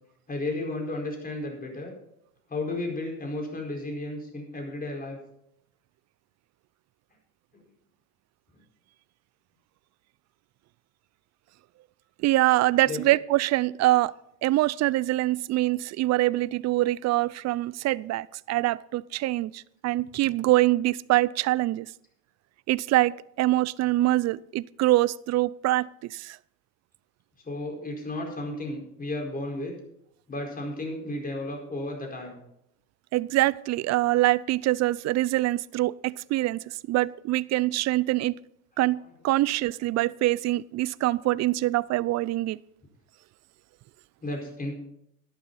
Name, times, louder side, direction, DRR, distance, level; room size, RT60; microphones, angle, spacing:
voice 1, 0.3-1.9 2.5-5.2 12.8-13.0 27.4-29.7 30.3-32.4 44.2-44.7, left 2 dB, 25° left, 1 dB, 4.6 m, -33 dB
voice 2, 12.2-14.1 14.4-21.9 22.7-26.4 33.1-36.6 36.9-38.3 38.8-39.0 39.2-42.6, right 16 dB, 45° right, 22 dB, 0.5 m, -24 dB
12.5 x 11.5 x 4.1 m, 0.76 s
supercardioid pair, 95°, 37 cm